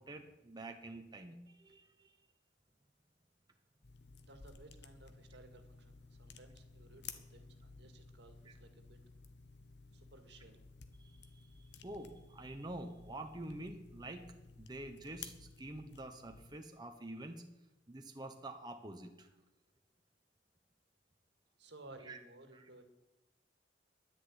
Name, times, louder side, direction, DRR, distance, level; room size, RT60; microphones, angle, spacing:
voice 1, 0.0-2.1 11.0-14.3 14.6-17.4 17.9-19.3 22.1-22.2 22.5-22.6, right 1 dB, 25° right, 4 dB, 1.0 m, -47 dB
sound 1, 3.8-16.6, left 5 dB, 70° left, 1.2 m, -55 dB
voice 2, 4.2-9.0 9.9-10.6 21.6-22.8, right 2 dB, 70° right, 7 dB, 2.1 m, -58 dB
11.0 x 10.0 x 9.7 m, 1.0 s
head